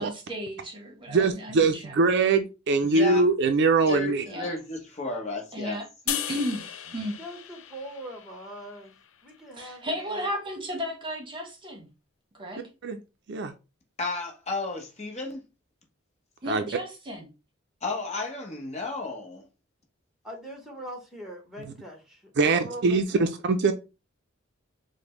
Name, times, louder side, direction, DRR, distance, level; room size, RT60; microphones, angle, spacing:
voice 1, 0.0-2.0 4.3-4.6 5.5-7.2 9.6-11.9 12.3-12.7 16.4-17.3, equal, 25° right, 1.1 m, -34 dB
voice 2, 1.1-4.2 12.8-13.0 13.3-13.5 16.5-16.6 22.4-23.7, right 3 dB, 60° right, 0.4 m, -22 dB
voice 3, 2.8-3.2 3.9-5.8 14.0-15.5 17.8-19.5, left 3 dB, 35° left, 0.9 m, -33 dB
sound 1, 6.1-9.4, left 11 dB, 80° left, 0.4 m, -36 dB
voice 4, 7.2-8.9 9.2-10.3 20.2-23.3, equal, ahead, 1.1 m, -42 dB
5.0 x 2.1 x 3.0 m
head